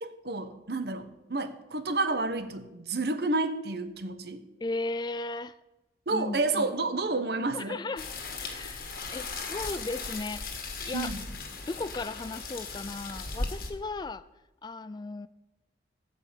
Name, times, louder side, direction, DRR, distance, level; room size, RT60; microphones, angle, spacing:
voice 1, 0.0-4.4 6.1-7.8 10.9-11.3, right 3 dB, 60° right, 9 dB, 1.0 m, -30 dB
voice 2, 4.6-5.5 6.1-6.7 7.5-8.1 8.4-11.1 11.7-14.2 14.6-15.3, left 3 dB, 25° left, 15 dB, 0.3 m, -36 dB
sound 1, 8.0-13.7, left 3 dB, 55° left, 1.7 m, -37 dB
15.5 x 5.5 x 8.2 m, 1.0 s
head